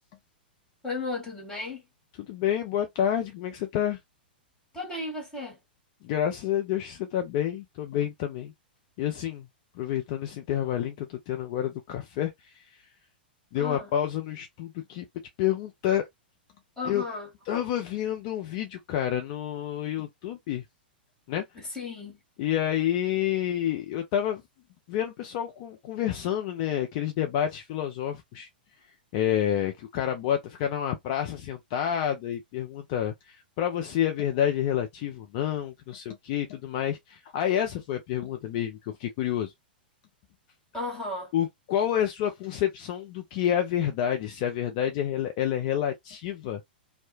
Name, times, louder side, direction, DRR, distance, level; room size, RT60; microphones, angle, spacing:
voice 1, 0.8-1.8 4.7-5.6 13.5-13.9 16.8-17.3 21.5-22.2 40.7-41.3, left 3 dB, 10° left, 1.7 m, -34 dB
voice 2, 2.2-4.0 6.0-8.5 9.0-9.5 9.8-12.6 13.5-15.0 15.4-16.1 16.8-17.0 17.5-20.6 21.3-21.4 22.4-24.4 24.9-28.5 29.1-39.5 41.3-46.6, left 10 dB, 45° left, 0.4 m, -29 dB
2.7 x 2.1 x 2.5 m
figure-of-eight pair, 105°, 5 cm